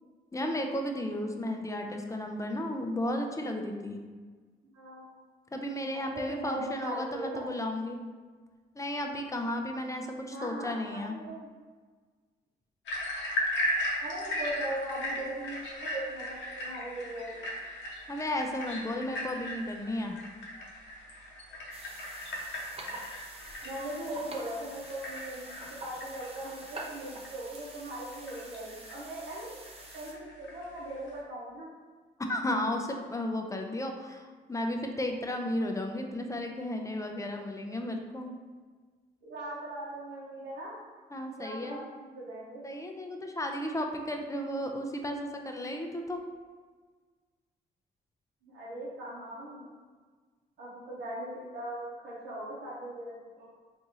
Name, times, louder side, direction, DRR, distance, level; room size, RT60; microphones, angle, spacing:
voice 1, 0.3-4.0 5.5-8.0 8.8-11.2 18.1-20.2 32.3-38.3 41.1-41.8 42.6-46.2, left 1 dB, 15° left, 3 dB, 0.5 m, -34 dB
voice 2, 4.7-5.1 6.1-7.5 10.3-11.5 14.0-17.5 23.6-29.6 29.9-31.7 39.2-40.7 41.4-42.6 48.4-49.7 50.6-53.5, right 1 dB, 80° right, -8 dB, 0.8 m, -39 dB
sound 1, 12.9-31.2, equal, 75° left, 0.7 m, -37 dB
sound 2, 21.7-30.1, right 2 dB, 30° right, 0.6 m, -47 dB
3.5 x 2.6 x 2.8 m, 1.5 s
supercardioid pair, 60°, 19 cm